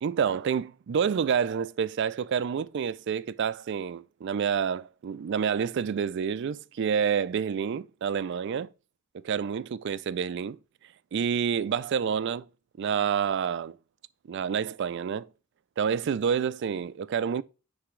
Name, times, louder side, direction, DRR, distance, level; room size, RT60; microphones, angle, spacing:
voice 1, 0.0-8.7 9.2-10.6 11.1-12.5 12.8-13.8 14.3-15.3 15.8-17.4, right 7 dB, 55° right, 0.3 m, -28 dB
9.7 x 3.4 x 3.2 m
head